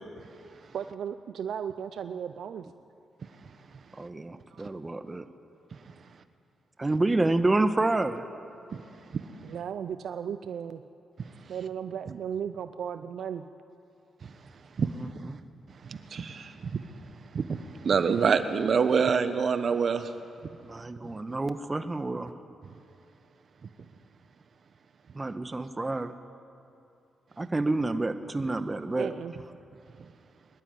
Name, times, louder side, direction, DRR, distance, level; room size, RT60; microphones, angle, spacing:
voice 1, 0.7-2.7 4.5-4.6 9.4-10.8 11.5-13.5 29.0-29.3, right 8 dB, 75° right, 11 dB, 0.6 m, -35 dB
voice 2, 3.9-5.2 6.8-8.3 15.0-15.4 20.6-22.3 25.1-26.2 27.4-29.1, right 2 dB, 25° right, 9 dB, 1.3 m, -28 dB
voice 3, 14.8-15.1 15.8-16.9 17.3-20.1 21.0-21.2, right 6 dB, 60° right, 10 dB, 1.3 m, -27 dB
23.5 x 12.0 x 9.6 m, 2.7 s
supercardioid pair, 60°, 0 cm